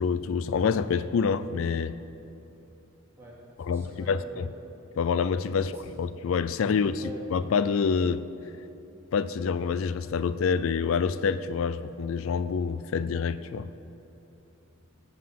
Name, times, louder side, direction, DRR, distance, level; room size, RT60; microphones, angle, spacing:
voice 1, 0.0-2.0 3.6-4.5 5.0-8.2 9.1-13.8, left 5 dB, 75° left, 14 dB, 0.4 m, -27 dB
voice 2, 3.2-4.5 5.6-5.8 7.0-7.2, right 2 dB, 15° right, -6 dB, 2.7 m, -46 dB
16.5 x 5.7 x 7.6 m, 2.9 s
head